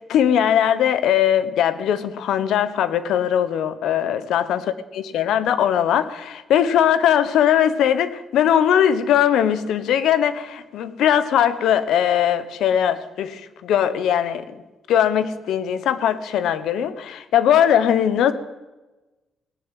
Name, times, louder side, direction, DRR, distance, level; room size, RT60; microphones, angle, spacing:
voice 1, 0.1-14.4 14.9-18.3, left 9 dB, 80° left, 14 dB, 1.0 m, -20 dB
17.5 x 7.1 x 9.2 m, 1.1 s
cardioid pair, 155°, 0 cm